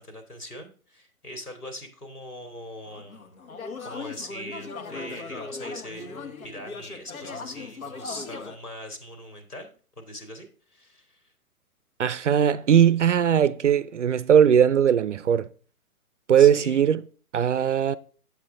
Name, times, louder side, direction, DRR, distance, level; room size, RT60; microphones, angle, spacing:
voice 1, 0.0-3.3 3.8-11.3 16.4-16.8, left 1 dB, 85° left, 2.9 m, -41 dB
sound 1, 2.9-8.6, left 4 dB, 70° left, 1.6 m, -38 dB
voice 2, 12.0-15.5 16.3-17.0 17.3-18.0, right 9 dB, 55° right, 0.5 m, -19 dB
8.3 x 8.1 x 3.6 m
figure-of-eight pair, 135°, 44 cm